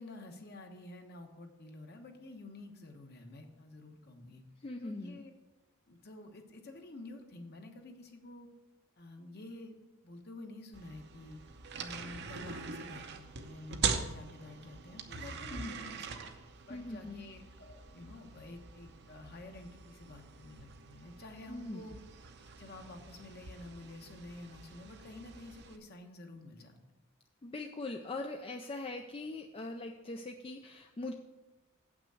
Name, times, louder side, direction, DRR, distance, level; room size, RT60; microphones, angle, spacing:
voice 1, 0.0-4.4 4.8-5.3 5.9-8.5 9.0-11.4 11.8-16.1 16.7-21.9 22.4-26.8, left 2 dB, 50° left, 4 dB, 1.1 m, -50 dB
voice 2, 4.6-5.2 15.5-15.7 16.7-17.2 21.5-21.8 27.4-31.1, left 2 dB, 25° left, 4 dB, 0.4 m, -41 dB
sound 1, 10.7-25.8, right 5 dB, 55° right, 0.7 m, -43 dB
8.0 x 6.0 x 6.3 m, 1.1 s
head